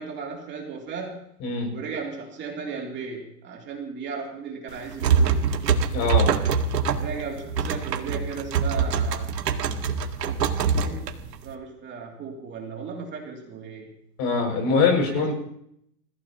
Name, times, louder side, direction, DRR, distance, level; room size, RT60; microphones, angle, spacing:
voice 1, 0.0-1.2 1.7-5.6 7.0-9.4 10.8-13.9 15.1-15.3, right 5 dB, 20° right, -1 dB, 2.8 m, -36 dB
sound 1, 4.7-11.5, right 6 dB, 75° right, 2.0 m, -24 dB
voice 2, 5.9-6.3 14.2-15.3, left 4 dB, 35° left, 2 dB, 6.3 m, -23 dB
29.5 x 15.5 x 3.0 m, 0.74 s
hypercardioid pair, 140°, 49 cm